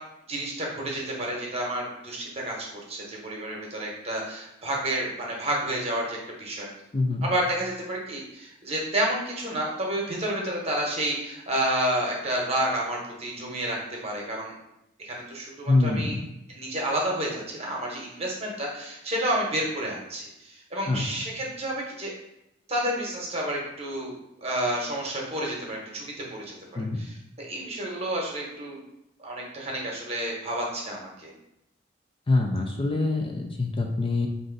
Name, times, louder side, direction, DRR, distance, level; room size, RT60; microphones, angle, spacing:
voice 1, 0.3-6.7 7.2-13.8 14.0-14.5 15.0-16.1 16.5-22.1 22.7-24.1 24.4-28.8 29.2-31.3, right 1 dB, 35° right, -2 dB, 1.0 m, -30 dB
voice 2, 6.9-7.3 15.7-16.2 20.9-21.0 26.8-27.0 32.3-34.3, left 2 dB, 30° left, 2 dB, 0.4 m, -25 dB
4.3 x 2.6 x 3.8 m, 0.85 s
head